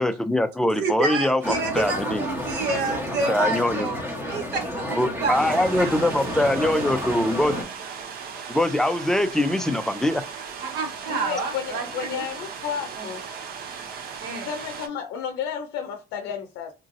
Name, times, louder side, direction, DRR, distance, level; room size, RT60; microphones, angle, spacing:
voice 1, 0.0-2.2 3.3-3.9 5.0-7.6 8.5-10.2, left 1 dB, 5° left, 0.3 m, -23 dB
voice 2, 0.8-6.0 10.6-12.2 13.0-13.1 14.2-14.5, right 4 dB, 80° right, 0.9 m, -29 dB
sound 1, 1.4-7.6, left 1 dB, 10° right, 1.0 m, -30 dB
sound 2, 5.3-14.9, right 6 dB, 65° right, 0.6 m, -37 dB
voice 3, 11.1-13.2 14.4-16.7, left 8 dB, 90° left, 0.5 m, -32 dB
3.0 x 2.5 x 2.6 m
cardioid pair, 110°, 17 cm